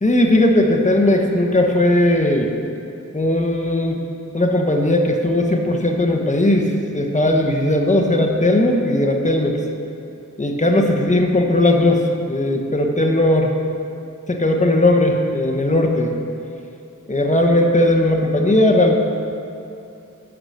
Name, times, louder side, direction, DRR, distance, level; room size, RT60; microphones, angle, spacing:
voice 1, 0.0-2.5 3.1-4.0 4.3-9.6 10.4-13.5 14.3-16.1 17.1-18.9, left 1 dB, 25° left, 2 dB, 1.1 m, -17 dB
12.0 x 4.9 x 6.6 m, 2.6 s
wide cardioid pair, 60°, 32 cm